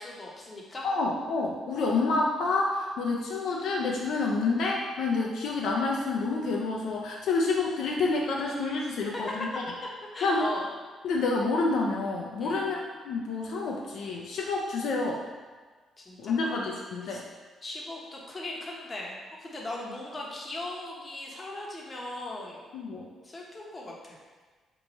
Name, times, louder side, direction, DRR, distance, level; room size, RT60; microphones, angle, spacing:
voice 1, 0.0-0.9 9.1-10.7 12.4-12.7 16.0-16.6 17.1-17.2 17.6-22.7 23.2-24.2, left 2 dB, 30° left, -2 dB, 0.7 m, -38 dB
voice 2, 0.8-9.5 10.2-10.5 11.0-12.8 13.1-15.2 16.2-17.2 22.7-23.1, left 3 dB, 75° left, -1 dB, 0.4 m, -28 dB
3.0 x 2.3 x 3.9 m, 1.4 s
cardioid pair, 90°, 0 cm